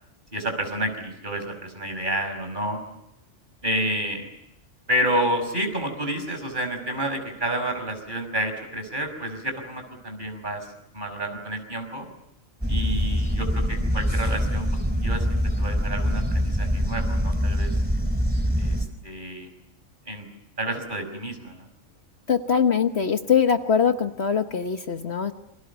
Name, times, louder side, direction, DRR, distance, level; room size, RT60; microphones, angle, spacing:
voice 1, 0.3-2.8 3.6-4.3 4.9-12.1 12.7-14.7 15.0-15.3 15.6-17.8 18.6-19.5 20.1-20.3 20.6-21.7, right 1 dB, 35° right, 6 dB, 5.8 m, -29 dB
sound 1, 12.6-18.9, equal, 5° right, 2.3 m, -24 dB
voice 2, 22.3-25.3, left 7 dB, 55° left, 7 dB, 1.4 m, -22 dB
28.5 x 26.0 x 7.1 m, 0.86 s
omnidirectional pair, 1.4 m